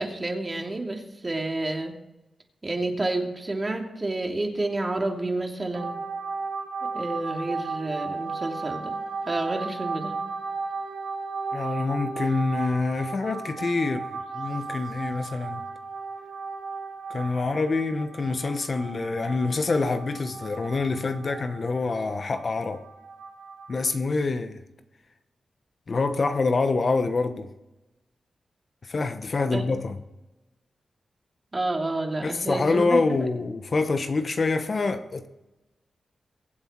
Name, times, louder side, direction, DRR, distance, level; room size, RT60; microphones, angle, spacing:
voice 1, 0.0-1.9 2.6-5.9 6.9-9.0 9.2-10.2 29.5-29.6 31.5-33.0, right 2 dB, 35° right, 2.9 m, -29 dB
sound 1, 5.7-23.8, right 4 dB, 85° right, 2.2 m, -35 dB
voice 2, 11.5-15.6 17.1-22.8 23.7-24.6 25.9-27.5 28.8-30.0 32.2-35.3, left 3 dB, 55° left, 1.1 m, -26 dB
23.0 x 7.9 x 4.7 m
cardioid pair, 50°, 0 cm